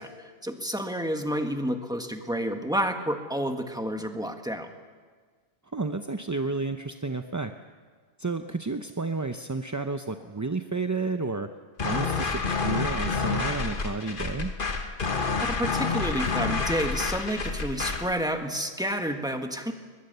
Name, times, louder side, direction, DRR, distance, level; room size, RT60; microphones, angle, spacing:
voice 1, 0.0-4.7 15.4-19.7, equal, 5° right, 5 dB, 1.5 m, -30 dB
voice 2, 5.6-7.5 8.2-11.5 11.8-14.5, right 3 dB, 20° right, 7 dB, 0.5 m, -31 dB
sound 1, 11.8-18.1, left 4 dB, 50° left, 1.4 m, -28 dB
22.0 x 21.5 x 6.8 m, 1.6 s
omnidirectional pair, 1.1 m